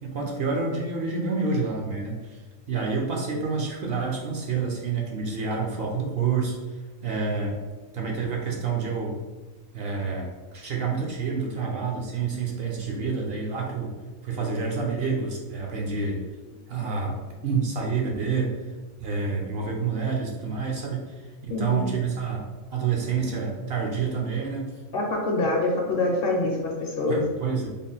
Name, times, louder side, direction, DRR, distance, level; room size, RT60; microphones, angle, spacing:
voice 1, 0.0-2.4 2.7-6.5 7.0-7.6 7.9-9.2 9.7-14.0 14.2-16.2 16.7-18.6 19.0-21.0 21.5-22.4 22.7-24.6 27.1-27.7, right 5 dB, 60° right, -1 dB, 0.7 m, -28 dB
voice 2, 21.5-21.9 24.9-27.2, left 2 dB, 60° left, 0 dB, 0.7 m, -25 dB
3.5 x 2.2 x 3.9 m, 1.3 s
omnidirectional pair, 1.3 m